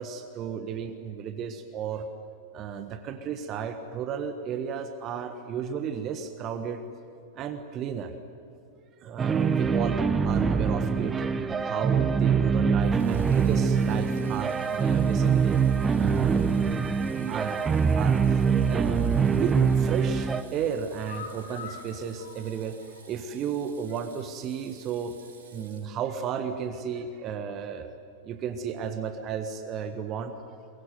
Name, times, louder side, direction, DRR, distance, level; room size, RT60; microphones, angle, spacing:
voice 1, 0.0-2.1 2.5-6.8 7.3-8.1 9.0-11.2 11.6-15.6 16.0-16.8 17.3-17.6 17.9-18.4 18.7-22.8 23.1-25.2 25.5-27.9 28.2-30.3, right 7 dB, 35° right, 9 dB, 1.5 m, -33 dB
sound 1, 9.2-20.4, right 6 dB, 15° right, 1.0 m, -24 dB
Water tap faucet / Sink (filling or washing), 12.8-26.2, right 5 dB, 60° right, 7.3 m, -54 dB
sound 2, 20.0-23.4 23.7-23.8 24.2-24.3, left 5 dB, 65° left, 3.1 m, -46 dB
22.5 x 22.5 x 9.4 m, 2.8 s
figure-of-eight pair, 90°, 0 cm